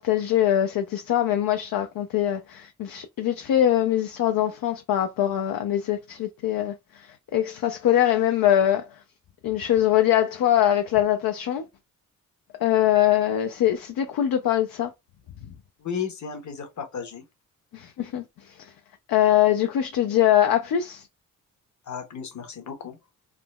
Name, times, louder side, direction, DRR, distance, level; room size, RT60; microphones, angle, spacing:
voice 1, 0.0-8.9 9.4-11.6 12.6-14.9 17.7-18.2 18.6-18.7 19.1-21.1, left 11 dB, 70° left, 0.5 m, -22 dB
voice 2, 15.8-17.2 21.9-23.0, left 7 dB, 50° left, 1.0 m, -34 dB
3.6 x 2.1 x 2.2 m
cardioid pair, 55°, 36 cm